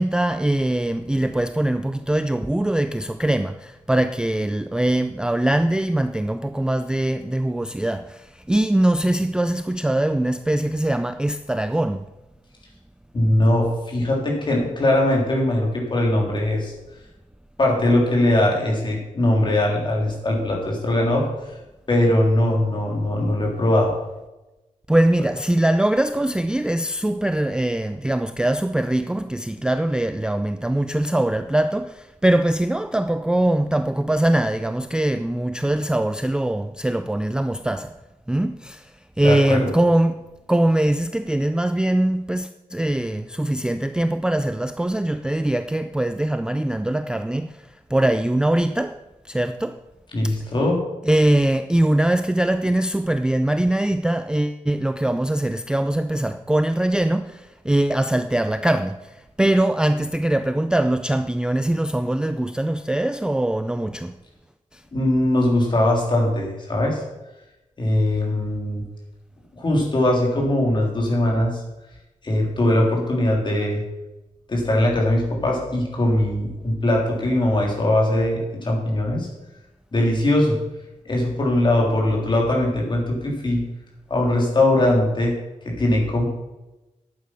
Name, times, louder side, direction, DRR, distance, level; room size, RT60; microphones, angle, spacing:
voice 1, 0.0-12.0 24.9-37.9 38.3-40.2 40.5-49.8 50.2-50.3 51.0-64.2 64.7-64.8, right 1 dB, 5° right, 0.4 m, -22 dB
voice 2, 13.1-16.7 17.6-21.3 21.9-23.9 39.2-39.7 50.1-50.9 64.9-67.0 67.8-68.8 69.6-71.6 72.2-73.8 74.5-79.3 79.9-80.6 81.1-83.6 84.1-85.4 85.6-86.2, left 1 dB, 35° left, 3.4 m, -20 dB
11.0 x 8.7 x 5.7 m
wide cardioid pair, 140°, 14 cm